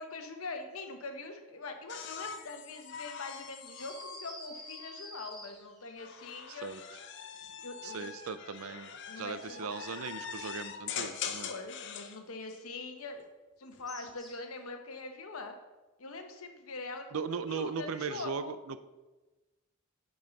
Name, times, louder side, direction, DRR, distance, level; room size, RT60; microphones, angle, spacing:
voice 1, 0.0-6.7 7.6-8.1 9.1-9.7 11.4-13.2 13.6-15.6 16.0-17.1 17.5-18.5, left 3 dB, 75° left, 5 dB, 1.0 m, -43 dB
sound 1, 1.9-5.2 6.0-12.2 13.6-14.2, left 7 dB, 50° left, 0.6 m, -43 dB
sound 2, 3.6-5.9 13.9-14.6, left 1 dB, ahead, 1.6 m, -48 dB
voice 2, 6.5-6.8 7.8-11.5 17.1-18.8, right 5 dB, 75° right, 13 dB, 0.5 m, -38 dB
10.0 x 5.5 x 4.0 m, 1.2 s
head